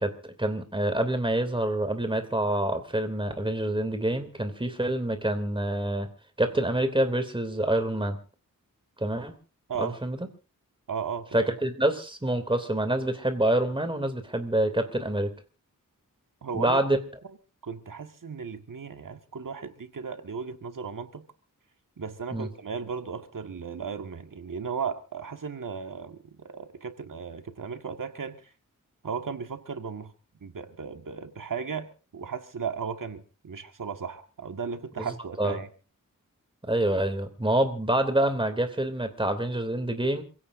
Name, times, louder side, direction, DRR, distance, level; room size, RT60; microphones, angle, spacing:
voice 1, 0.0-6.1 6.4-8.2 9.0-9.3 9.8-10.2 11.3-15.3 16.5-17.0 22.3-22.5 35.0-35.1 35.4-35.6 36.7-40.2, right 1 dB, 15° right, 3.0 m, -26 dB
voice 2, 10.9-11.5 16.4-16.8 17.6-21.3 22.0-28.5 29.0-30.1 30.4-35.7, right 6 dB, 70° right, 1.9 m, -36 dB
28.0 x 16.5 x 2.7 m
wide cardioid pair, 100°, 33 cm